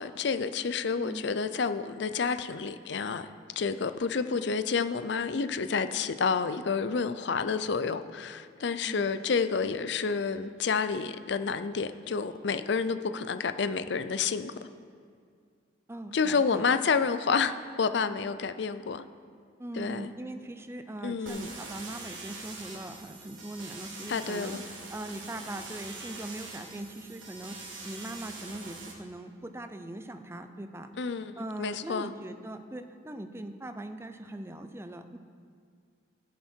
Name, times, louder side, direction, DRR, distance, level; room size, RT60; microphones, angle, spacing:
voice 1, 0.0-3.3 3.6-14.6 16.1-19.0 19.7-20.1 21.0-21.5 24.1-24.6 31.0-32.1, left 5 dB, 65° left, 11 dB, 0.5 m, -29 dB
voice 2, 15.9-16.6 19.6-35.2, right 1 dB, 15° right, 8 dB, 0.5 m, -41 dB
sound 1, 21.3-28.9, right 3 dB, 80° right, 1.8 m, -44 dB
16.5 x 7.3 x 4.5 m, 2.1 s
head